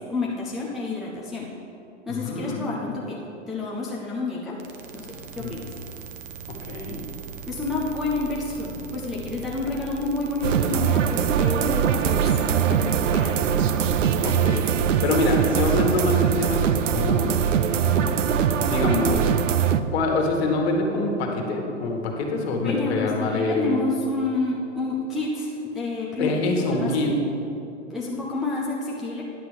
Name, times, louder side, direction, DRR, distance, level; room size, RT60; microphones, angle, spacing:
voice 1, 0.1-1.5 2.1-4.6 4.9-5.6 7.4-12.4 12.7-13.5 22.6-26.4 26.8-27.1 27.9-29.2, left 3 dB, ahead, -5 dB, 0.4 m, -29 dB
voice 2, 2.1-2.6 5.4-5.5 6.7-7.0 14.2-17.4 17.8-18.2 18.6-19.3 19.9-23.8 26.2-27.1, left 2 dB, 55° left, 1 dB, 1.7 m, -25 dB
sound 1, 4.6-14.5, right 6 dB, 45° right, 1.0 m, -39 dB
sound 2, 10.4-19.8, right 8 dB, 75° right, 0.6 m, -22 dB
9.9 x 5.9 x 5.0 m, 2.8 s
hypercardioid pair, 125°, 37 cm